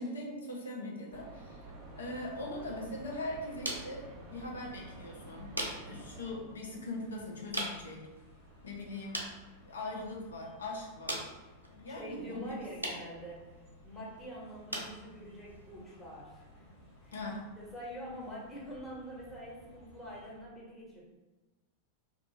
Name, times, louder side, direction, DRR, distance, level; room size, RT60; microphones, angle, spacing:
voice 1, 0.0-1.6 2.0-8.1 8.6-9.3 9.6-11.3 11.7-12.6 12.8-12.9 17.1-17.4, left 2 dB, 70° left, -1 dB, 0.6 m, -41 dB
sound 1, 1.1-6.4, right 2 dB, 30° right, 0.6 m, -50 dB
sound 2, 1.7-20.4, left 1 dB, 45° left, 1.3 m, -58 dB
sound 3, 2.4-17.4, right 1 dB, 85° right, 0.4 m, -45 dB
voice 2, 11.9-13.5 13.8-16.6 17.0-17.1 17.6-21.0, equal, 10° left, -8 dB, 1.2 m, -45 dB
2.4 x 2.3 x 2.9 m, 1.1 s
figure-of-eight pair, 90°, 0 cm